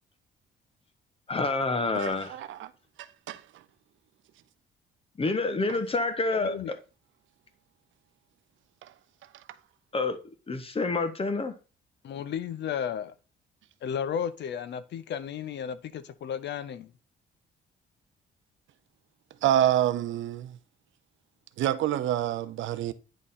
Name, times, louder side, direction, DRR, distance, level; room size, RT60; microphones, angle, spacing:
voice 1, 1.3-2.4 5.2-6.8 9.9-10.2 10.5-11.5, left 3 dB, 30° left, 1.1 m, -28 dB
voice 2, 2.0-2.7 3.3-3.4 19.4-20.5 21.6-22.9, right 12 dB, 75° right, 0.6 m, -27 dB
voice 3, 6.3-6.7 12.0-13.1 13.8-16.9, left 8 dB, 65° left, 0.6 m, -33 dB
9.5 x 3.7 x 4.1 m
cardioid pair, 90°, 20 cm